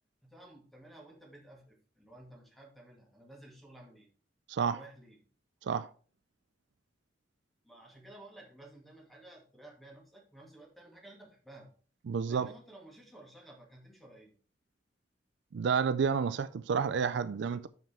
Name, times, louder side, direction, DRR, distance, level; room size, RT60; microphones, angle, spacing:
voice 1, 0.2-4.1 4.7-5.2 7.6-11.7 12.2-14.3, right 1 dB, ahead, 2.3 m, -54 dB
voice 2, 12.1-12.5 15.5-17.7, right 6 dB, 65° right, 0.4 m, -30 dB
7.4 x 5.8 x 4.3 m
head